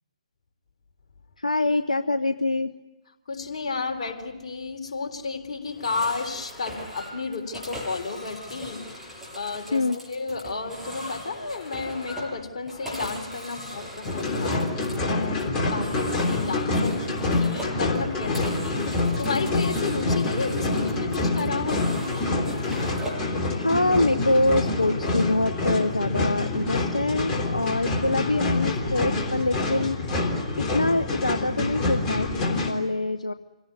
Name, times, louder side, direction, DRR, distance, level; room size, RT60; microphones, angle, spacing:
voice 1, 1.4-2.7 9.7-10.0 23.6-30.0 30.6-33.3, left 2 dB, 85° left, 10 dB, 0.7 m, -25 dB
voice 2, 3.3-21.9, left 4 dB, 55° left, 2 dB, 3.7 m, -32 dB
sound 1, 5.7-23.3, equal, 5° right, 6.4 m, -39 dB
sound 2, 14.0-32.7, left 2 dB, 20° left, 3.5 m, -26 dB
27.0 x 17.5 x 9.6 m, 1.1 s
figure-of-eight pair, 130°, 4 cm